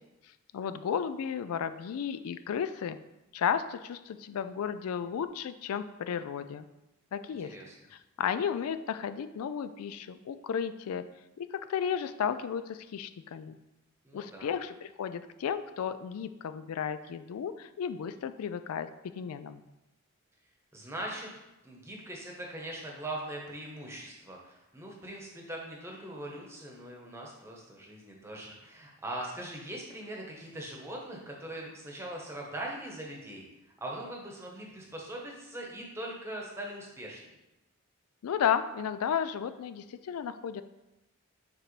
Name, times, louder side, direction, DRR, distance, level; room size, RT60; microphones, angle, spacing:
voice 1, 0.5-3.0 3.3-6.6 7.1-7.5 8.2-11.0 11.4-13.6 14.1-18.9 19.2-19.6 38.2-40.6, left 7 dB, 85° left, 11 dB, 0.3 m, -33 dB
voice 2, 7.4-7.7 14.0-14.5 20.7-21.3 21.6-33.5 33.8-37.2, right 1 dB, 10° right, -1 dB, 1.0 m, -41 dB
7.3 x 4.5 x 3.2 m, 0.96 s
head